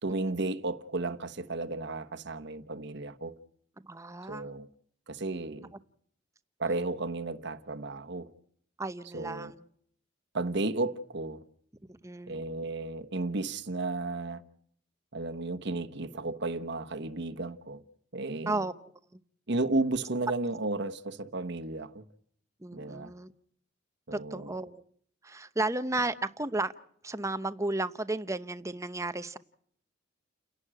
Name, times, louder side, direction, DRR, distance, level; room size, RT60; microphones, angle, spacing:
voice 1, 0.0-3.3 4.3-4.7 5.1-5.7 6.6-8.3 9.1-9.5 10.3-11.4 12.3-14.4 15.1-17.8 18.1-18.7 19.5-22.0 22.7-23.1 24.1-24.5, right 2 dB, 55° right, 1.2 m, -33 dB
voice 2, 3.8-4.5 8.8-9.6 11.9-12.4 18.5-18.7 22.6-23.3 24.1-24.8 25.2-26.7 27.0-29.4, right 2 dB, 15° right, 0.8 m, -33 dB
30.0 x 11.5 x 8.9 m
head